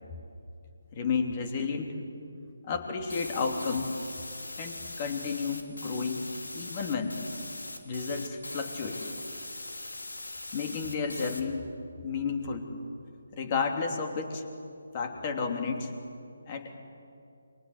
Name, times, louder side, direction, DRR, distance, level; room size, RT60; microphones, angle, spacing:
voice 1, 0.9-1.9 2.6-3.9 4.6-7.1 7.8-9.0 10.5-11.7 12.0-12.7 13.3-14.4 14.9-15.9 16.5-16.8, left 5 dB, 25° left, 4 dB, 3.0 m, -32 dB
sound 1, 3.1-11.4, left 2 dB, 70° left, 3.1 m, -41 dB
30.0 x 24.5 x 8.0 m, 2.5 s
figure-of-eight pair, 150°, 0 cm